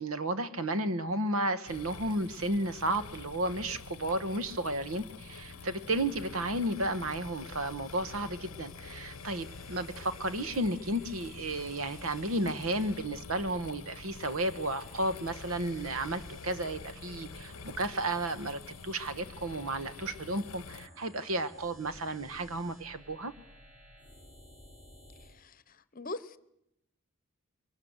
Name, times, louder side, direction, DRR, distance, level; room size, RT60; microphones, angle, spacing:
voice 1, 0.0-23.3, right 1 dB, 80° right, 12 dB, 1.4 m, -33 dB
sound 1, 1.7-20.9, left 5 dB, 80° left, 0.7 m, -47 dB
sound 2, 5.4-25.4, equal, 35° right, 7.8 m, -55 dB
voice 2, 25.2-26.4, left 2 dB, 40° left, 16 dB, 0.9 m, -42 dB
23.0 x 18.5 x 8.1 m, 0.81 s
head